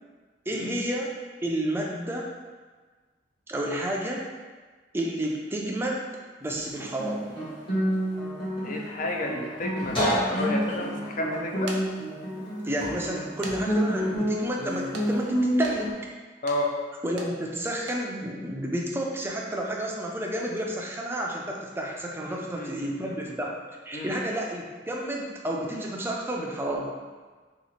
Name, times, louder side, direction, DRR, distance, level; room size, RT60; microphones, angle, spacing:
voice 1, 0.5-1.1 1.4-2.3 3.5-4.2 4.9-6.0 6.4-7.3 12.6-16.0 17.0-23.5 23.9-27.0, right 1 dB, 15° right, -1 dB, 0.4 m, -31 dB
Guitar, 6.5-15.9, equal, 30° left, 1.1 m, -28 dB
voice 2, 8.6-11.8 16.4-16.7 22.3-23.3 23.9-24.1, left 2 dB, 45° left, 1 dB, 0.4 m, -32 dB
sound 1, 10.1-10.2 11.4-11.8 12.4-12.5 13.4-13.6 13.9-14.0 14.9-15.1 15.6-15.8 16.5-16.6 17.2-17.3 17.8-18.0, right 3 dB, 75° right, 0.5 m, -39 dB
2.9 x 2.4 x 4.1 m, 1.4 s
head